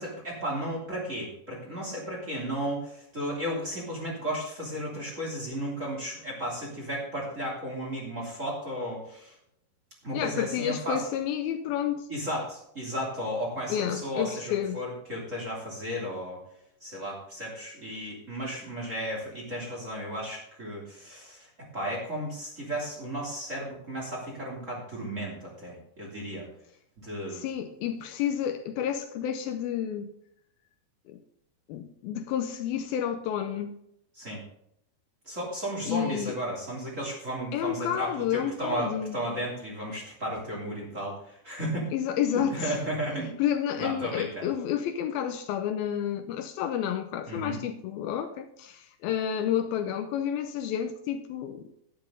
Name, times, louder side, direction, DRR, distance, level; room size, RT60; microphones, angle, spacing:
voice 1, 0.0-9.3 10.0-11.0 12.1-16.4 16.8-21.5 21.7-26.5 27.0-27.4 34.2-34.4 35.3-41.9 42.3-43.3 43.8-44.5 47.3-47.6, equal, 20° right, 2.7 m, -34 dB
voice 2, 10.1-12.1 13.7-14.8 27.3-30.1 31.1-31.2 31.7-33.7 35.9-36.4 37.5-39.2 41.9-42.8 43.4-51.7, left 9 dB, 80° left, 2.4 m, -30 dB
11.5 x 10.5 x 3.8 m
omnidirectional pair, 4.5 m